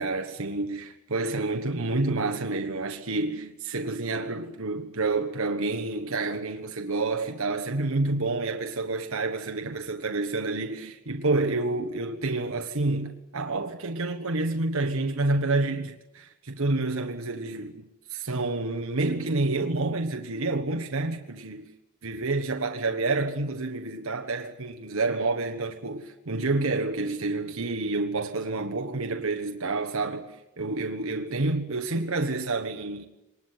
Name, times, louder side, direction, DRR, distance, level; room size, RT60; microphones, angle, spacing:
voice 1, 0.0-17.8 18.1-21.7 22.0-33.0, right 3 dB, 70° right, 1.4 m, -29 dB
24.0 x 19.5 x 9.8 m
head